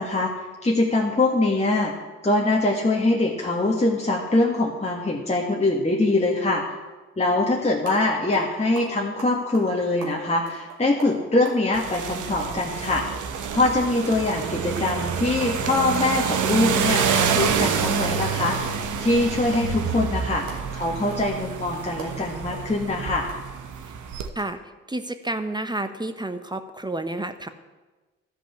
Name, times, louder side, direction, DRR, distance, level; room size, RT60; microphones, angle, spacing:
voice 1, 0.0-1.9 2.2-6.8 7.2-13.0 13.5-23.3, left 2 dB, 20° left, -2 dB, 1.7 m, -23 dB
sound 1, 7.8-8.0 8.3-8.5 8.7-11.6 11.9-12.1 12.4-14.0 14.4-14.5 14.9-15.0 15.4-15.6 15.8-16.6 16.9-19.2 19.5-23.4 23.9-24.0 24.3-24.4, right 4 dB, 80° right, 2.3 m, -40 dB
sound 2, 11.7-24.3, right 7 dB, 60° right, 1.1 m, -27 dB
voice 2, 24.9-27.5, right 2 dB, 15° right, 9 dB, 1.0 m, -30 dB
12.5 x 5.3 x 7.9 m, 1.2 s
hypercardioid pair, 45°, 34 cm